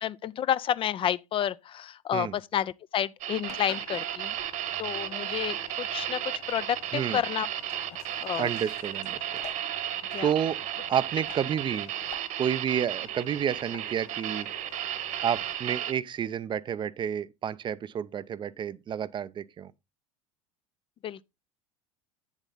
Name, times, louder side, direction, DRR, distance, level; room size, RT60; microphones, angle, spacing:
voice 1, 0.0-4.4 4.8-7.5 7.9-8.5 10.1-10.3 21.0-21.2, left 10 dB, 30° left, 0.4 m, -30 dB
sound 1, 3.2-15.9, right 11 dB, 45° right, 1.2 m, -34 dB
Engine, 3.4-15.5, left 10 dB, 55° left, 2.3 m, -51 dB
voice 2, 8.4-9.4 10.2-10.6 10.9-11.9 12.4-14.5 15.2-19.7, right 9 dB, 25° right, 0.5 m, -30 dB
9.0 x 7.2 x 3.9 m
figure-of-eight pair, 75°, 18 cm